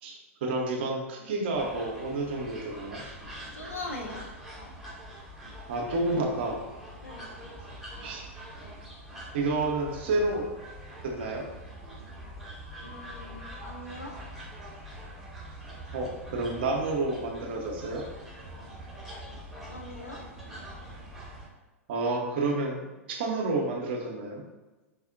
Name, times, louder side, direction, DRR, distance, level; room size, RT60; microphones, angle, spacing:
voice 1, 0.0-3.0 5.7-6.6 8.0-8.3 9.3-10.5 11.0-11.4 15.9-18.1 21.9-24.4, right 2 dB, 50° right, 1 dB, 0.6 m, -30 dB
sound 1, 1.5-21.5, equal, ahead, 0.7 m, -44 dB
voice 2, 3.5-4.2 7.0-7.3 12.8-14.1 19.7-20.2, left 2 dB, 75° left, 0 dB, 0.6 m, -40 dB
4.3 x 2.0 x 2.6 m, 1.2 s
figure-of-eight pair, 95°, 7 cm